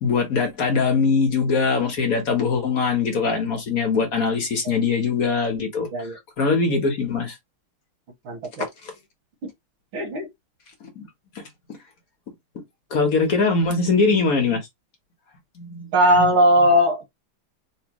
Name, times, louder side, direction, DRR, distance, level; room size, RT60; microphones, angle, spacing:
voice 1, 0.0-5.9 6.4-7.3 11.0-11.1 12.9-14.6 15.6-16.3, left 4 dB, 50° left, 1.3 m, -22 dB
voice 2, 8.2-8.6 9.9-10.3 15.9-17.0, equal, 75° right, 2.2 m, -18 dB
4.4 x 2.7 x 2.9 m
omnidirectional pair, 2.2 m